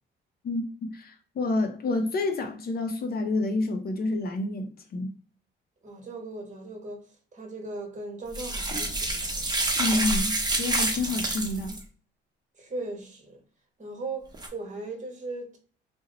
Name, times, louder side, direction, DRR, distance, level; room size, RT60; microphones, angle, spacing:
voice 1, 0.4-5.2 9.8-11.8, left 2 dB, 50° left, 0.5 m, -29 dB
voice 2, 5.8-9.4 12.6-13.4 13.8-15.6, right 2 dB, 40° right, 1.1 m, -38 dB
sound 1, 8.3-11.8 14.3-14.5, right 2 dB, 20° right, 0.8 m, -28 dB
2.8 x 2.0 x 3.7 m
cardioid pair, 90°, 20 cm